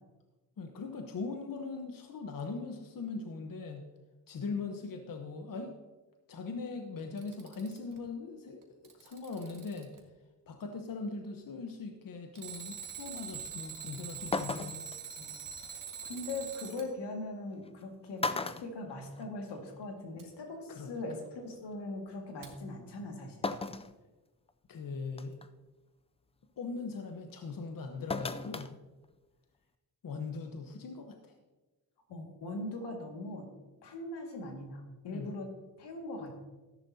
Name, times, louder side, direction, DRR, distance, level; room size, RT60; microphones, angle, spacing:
voice 1, 0.6-3.9 4.3-5.7 6.3-9.9 10.5-14.8 20.7-21.0 24.7-25.4 26.6-28.7 30.0-31.3 35.1-35.3, left 4 dB, 55° left, 4 dB, 1.1 m, -40 dB
Alarm, 7.0-8.0 8.6-10.0 12.3-16.9 20.2-20.3 22.4-22.5, right 6 dB, 50° right, 1.9 m, -44 dB
sound 1, 13.8-13.9 14.3-15.0 16.6-16.7 17.7-17.8 18.2-19.6 19.9-20.0 21.2-21.3 23.4-23.9 24.5-24.6 25.2-25.5 28.1-28.7 29.0-29.1, left 3 dB, 15° left, 0.4 m, -35 dB
voice 2, 15.2-23.5 32.1-33.5 33.8-35.5 35.8-36.3, left 2 dB, 80° left, 2 dB, 2.1 m, -41 dB
13.0 x 10.5 x 2.8 m, 1.2 s
cardioid pair, 75°, 40 cm